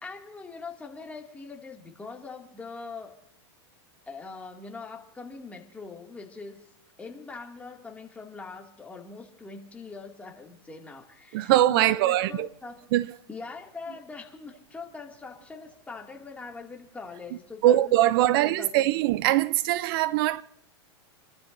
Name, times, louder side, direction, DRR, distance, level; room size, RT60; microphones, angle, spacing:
voice 1, 0.0-3.2 4.1-6.6 7.0-12.9 13.3-18.9, left 4 dB, 10° left, 2.2 m, -42 dB
voice 2, 11.3-12.5 12.9-13.1 17.6-20.4, right 14 dB, 55° right, 0.4 m, -22 dB
29.0 x 13.0 x 2.6 m
supercardioid pair, 130°, 14 cm